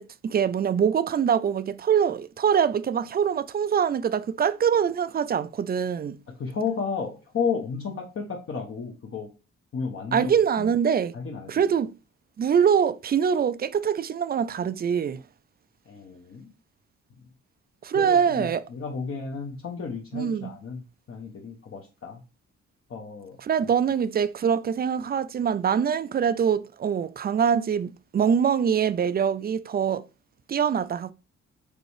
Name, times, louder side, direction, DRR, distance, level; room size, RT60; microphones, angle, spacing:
voice 1, 0.0-6.2 10.1-11.1 11.5-11.9 12.4-15.2 17.8-18.6 20.1-20.5 23.4-30.0 30.5-31.1, right 7 dB, 30° right, 0.4 m, -24 dB
voice 2, 6.3-9.3 9.7-10.7 11.1-11.6 15.9-16.5 17.9-22.2 22.9-23.4, left 5 dB, 45° left, 1.2 m, -33 dB
5.2 x 4.2 x 4.9 m
cardioid pair, 140°, 30 cm